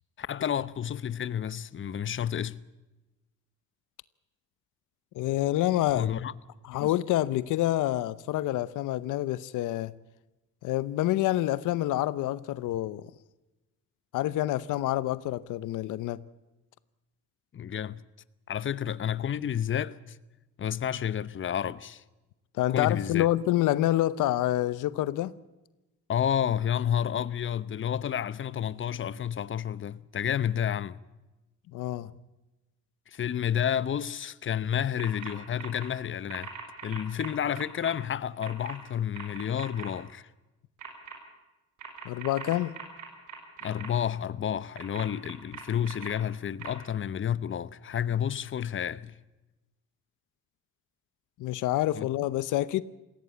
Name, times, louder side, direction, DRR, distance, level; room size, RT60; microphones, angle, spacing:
voice 1, 0.2-2.6 5.9-6.3 6.8-6.9 17.5-18.0 18.5-20.2 20.6-22.0 22.7-23.3 26.1-31.0 33.1-36.5 36.8-40.3 43.6-49.2 51.9-52.1, left 9 dB, 40° left, 0.9 m, -30 dB
voice 2, 5.1-6.1 6.7-9.9 10.6-13.0 14.1-16.2 22.6-25.3 31.7-32.1 42.0-42.7 51.4-52.8, left 14 dB, 85° left, 0.8 m, -27 dB
sound 1, 35.0-35.3 35.6-35.8 36.3-37.9 38.4-38.7 39.1-39.9 40.8-41.1 41.8-43.9 44.7-46.1 46.6-46.7, right 8 dB, 90° right, 5.9 m, -41 dB
19.5 x 16.5 x 8.4 m
cardioid pair, 90°, 30 cm